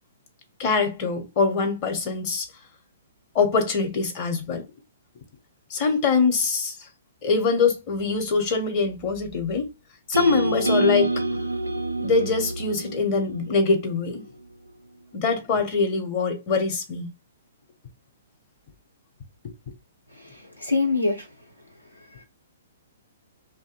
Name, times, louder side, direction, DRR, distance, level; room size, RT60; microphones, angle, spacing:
voice 1, 0.6-2.5 3.3-4.6 5.7-6.8 7.2-9.7 10.1-11.2 12.0-14.2 15.1-17.1, left 4 dB, 35° left, 0.8 m, -23 dB
sound 1, 10.1-14.3, right 2 dB, 80° right, 0.4 m, -27 dB
voice 2, 20.1-21.4 21.8-22.2, left 3 dB, 90° left, 1.0 m, -27 dB
2.6 x 2.5 x 2.5 m
figure-of-eight pair, 120°, 0 cm